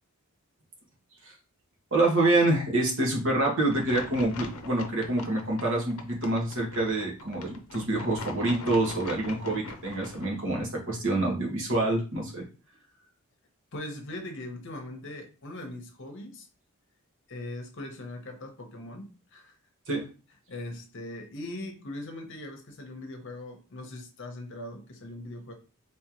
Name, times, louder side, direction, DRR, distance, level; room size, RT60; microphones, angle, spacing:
voice 1, 1.9-12.4 19.9-20.0, right 2 dB, 60° right, 1.4 m, -26 dB
sound 1, 3.7-10.3, left 3 dB, 85° left, 0.6 m, -42 dB
voice 2, 13.7-16.5 17.3-19.6 20.5-25.5, left 1 dB, 60° left, 0.9 m, -40 dB
3.5 x 3.4 x 3.0 m
head